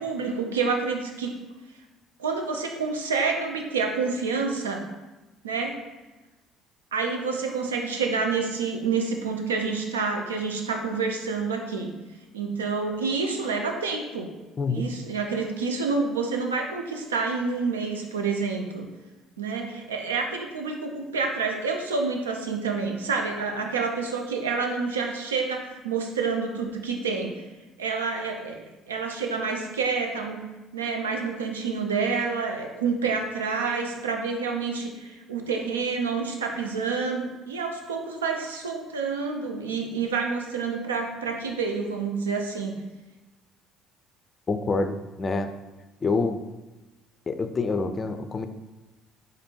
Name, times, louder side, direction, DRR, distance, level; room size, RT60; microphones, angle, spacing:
voice 1, 0.0-1.3 2.2-4.8 5.4-5.8 6.9-11.9 12.3-14.3 14.7-18.9 19.4-27.4 27.8-30.5 30.7-42.7, right 4 dB, 80° right, 3 dB, 0.5 m, -28 dB
voice 2, 44.5-45.5 46.0-46.4 47.3-48.5, left 3 dB, 30° left, 8 dB, 0.4 m, -26 dB
4.2 x 2.6 x 4.3 m, 1.1 s
figure-of-eight pair, 55°, 0 cm